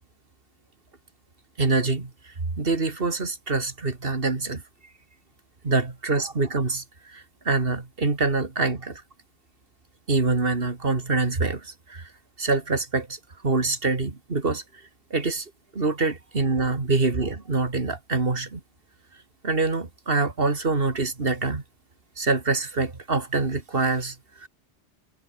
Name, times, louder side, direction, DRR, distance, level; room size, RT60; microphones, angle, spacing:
voice 1, 1.6-4.6 5.6-9.0 10.1-12.1 12.4-14.6 15.1-18.6 19.4-21.6 22.2-24.5, right 3 dB, 55° right, 2.7 m, -25 dB
omnidirectional pair, 1.2 m